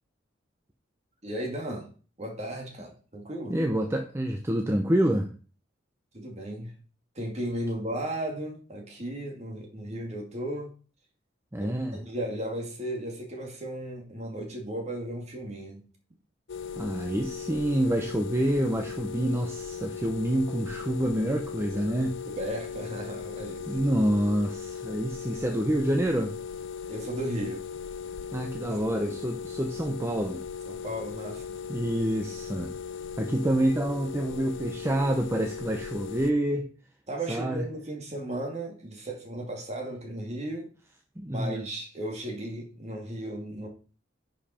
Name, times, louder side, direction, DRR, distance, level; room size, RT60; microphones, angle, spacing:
voice 1, 1.2-1.9 2.2-3.6 6.1-6.7 7.2-10.7 11.6-15.8 22.3-23.7 26.9-27.7 28.6-29.0 30.7-31.6 37.1-40.7 41.3-43.7, right 1 dB, 35° right, 2.4 m, -35 dB
voice 2, 3.5-5.3 11.5-12.0 16.8-22.2 23.7-26.4 28.3-30.4 31.7-32.7 33.2-36.7 37.3-37.6 41.2-41.6, right 1 dB, 15° right, 0.8 m, -27 dB
sound 1, 16.5-36.3, left 6 dB, 70° left, 0.5 m, -38 dB
10.0 x 5.4 x 4.3 m
head